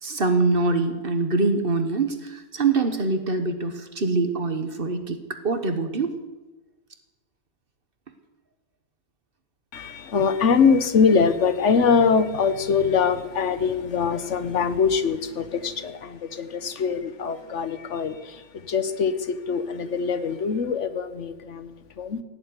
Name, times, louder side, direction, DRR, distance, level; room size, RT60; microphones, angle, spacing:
voice 1, 0.0-6.2, right 3 dB, 50° right, 8 dB, 1.5 m, -24 dB
voice 2, 9.7-22.2, left 5 dB, 85° left, 11 dB, 1.4 m, -23 dB
17.0 x 7.7 x 9.7 m, 1.1 s
omnidirectional pair, 1.2 m